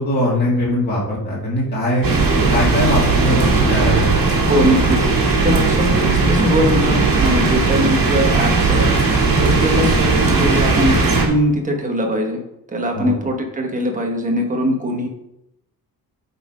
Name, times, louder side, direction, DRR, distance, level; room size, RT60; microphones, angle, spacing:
voice 1, 0.0-2.1 2.5-4.3 12.9-13.1, left 1 dB, 25° left, -7 dB, 2.4 m, -20 dB
sound 1, 2.0-11.3, right 3 dB, 60° right, 1.9 m, -17 dB
voice 2, 4.5-5.0 5.4-8.9 9.4-10.9 11.2-12.4 12.7-15.1, equal, 20° right, 2 dB, 1.2 m, -21 dB
7.6 x 4.2 x 4.9 m, 0.85 s
wide cardioid pair, 175°, 38 cm